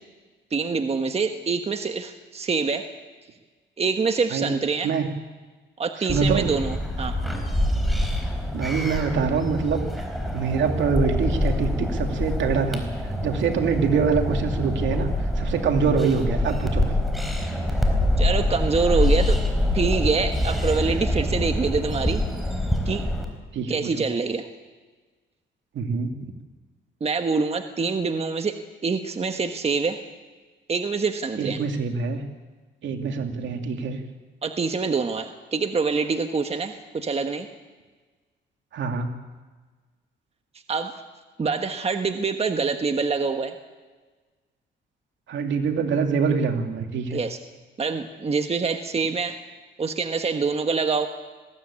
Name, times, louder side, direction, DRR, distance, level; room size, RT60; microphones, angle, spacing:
voice 1, 0.5-2.9 3.8-4.9 5.8-7.2 18.2-19.4 19.7-22.2 22.8-23.0 23.7-24.5 27.0-30.0 30.7-31.6 34.4-37.5 40.7-40.9 41.4-43.5 47.1-47.4 47.8-49.4 49.8-51.1, right 4 dB, 30° right, 6 dB, 1.3 m, -25 dB
voice 2, 6.0-6.5 8.5-9.9 10.3-12.9 13.2-15.1 15.4-16.9 23.5-23.9 25.7-26.1 31.4-32.2 32.8-34.0 38.7-39.1 45.3-47.2, right 5 dB, 70° right, 4 dB, 2.6 m, -24 dB
sound 1, 6.1-23.3, left 1 dB, ahead, 4.1 m, -25 dB
20.5 x 16.0 x 8.7 m, 1.3 s
cardioid pair, 90°, 20 cm